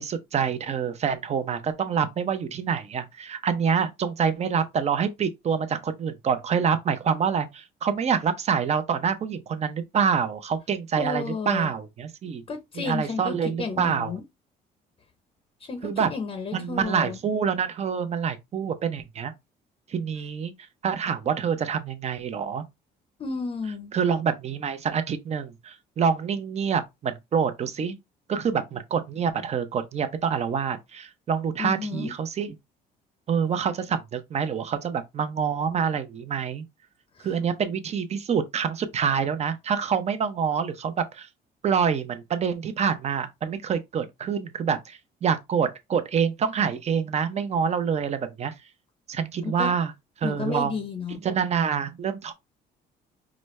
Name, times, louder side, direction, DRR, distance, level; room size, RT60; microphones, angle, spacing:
voice 1, 0.0-12.4 12.8-14.1 15.8-16.1 16.5-19.3 19.9-20.5 20.8-22.6 23.9-27.9 28.3-32.6 33.3-36.6 37.2-41.3 41.6-48.5 49.1-49.9 50.2-50.8 51.2-52.3, right 7 dB, 40° right, 0.7 m, -26 dB
voice 2, 11.0-11.7 12.5-14.2 15.6-17.2 23.2-23.9 31.6-32.1 37.2-37.3 49.4-49.7 50.2-51.2, left 4 dB, 35° left, 0.7 m, -32 dB
5.0 x 2.2 x 3.1 m
cardioid pair, 110°, 17 cm